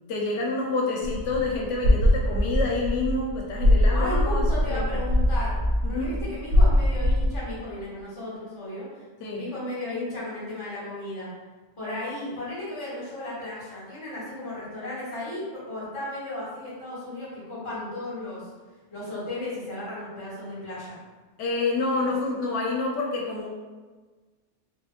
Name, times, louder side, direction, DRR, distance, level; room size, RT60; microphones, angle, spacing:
voice 1, 0.1-4.8 5.8-6.2 9.2-9.5 21.4-23.5, left 3 dB, 85° left, -2 dB, 0.9 m, -28 dB
sound 1, 1.0-7.4, left 1 dB, 85° right, 1.0 m, -22 dB
voice 2, 3.9-5.5 5.9-8.9 9.4-11.3 11.8-18.5 18.9-21.0, left 1 dB, 25° left, -9 dB, 1.2 m, -34 dB
3.4 x 2.2 x 3.0 m, 1.3 s
omnidirectional pair, 1.2 m